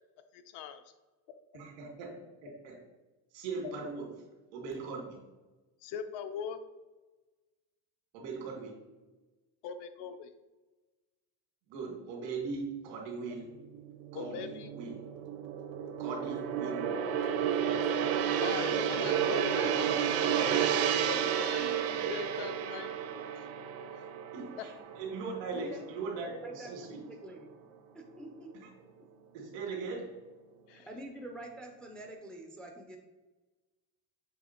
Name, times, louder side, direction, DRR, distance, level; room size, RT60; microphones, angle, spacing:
voice 1, 0.3-0.8 3.6-3.7 5.8-6.6 9.6-10.3 14.1-14.7 18.4-20.6 21.0-22.9 23.4-23.5 30.7-30.9, left 7 dB, 70° left, 9 dB, 0.7 m, -41 dB
voice 2, 1.5-2.1 2.4-2.8 3.3-5.2 8.1-8.8 11.7-13.6 14.1-15.1 16.0-16.9 21.9-22.5 22.8-23.2 23.9-27.0 28.5-28.7 29.3-30.1, right 4 dB, 90° right, 1 dB, 2.0 m, -40 dB
Gong, 13.6-26.1 26.4-26.7, right 8 dB, 60° right, 0.7 m, -32 dB
voice 3, 26.4-27.6 27.9-28.6 30.7-33.0, right 1 dB, ahead, 2 dB, 0.3 m, -46 dB
7.2 x 3.2 x 4.3 m, 1.2 s
cardioid pair, 160°, 43 cm